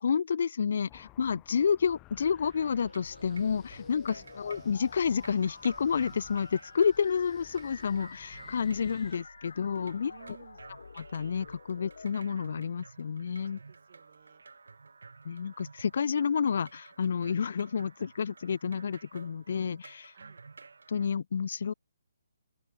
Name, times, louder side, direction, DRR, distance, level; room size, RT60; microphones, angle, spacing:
voice 1, 0.0-10.1 11.0-13.6 15.2-20.1 20.9-21.7, left 6 dB, 50° left, 0.5 m, -30 dB
sound 1, 0.9-9.1, left 20 dB, 15° left, 0.8 m, -56 dB
sound 2, 2.4-21.1, right 4 dB, 90° right, 2.6 m, -53 dB
sound 3, 2.6-12.1, left 4 dB, 80° left, 1.9 m, -49 dB
voice 2, 10.1-10.6 13.4-14.4 20.1-20.4, right 8 dB, 40° right, 1.3 m, -55 dB
open air
hypercardioid pair, 175°, 0 cm